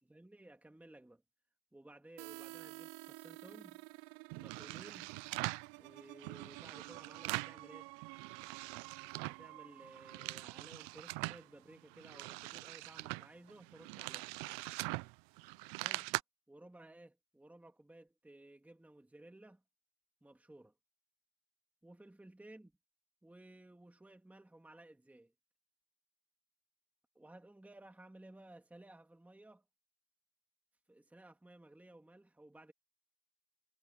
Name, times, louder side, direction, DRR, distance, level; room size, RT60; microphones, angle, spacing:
voice 1, 0.0-1.2 1.7-3.9 4.4-5.2 5.8-7.9 9.1-14.3 15.8-16.2 16.5-19.6 20.2-20.7 21.8-22.7 23.2-25.3 27.1-29.7 30.9-32.7, right 1 dB, 5° right, 2.2 m, -57 dB
sound 1, 2.2-11.8, right 27 dB, 85° right, 3.1 m, -53 dB
sound 2, 4.3-5.7 6.2-7.6 8.0-9.5 9.8-11.4 11.9-16.2, right 25 dB, 60° right, 0.7 m, -42 dB
cardioid pair, 160°, 50 cm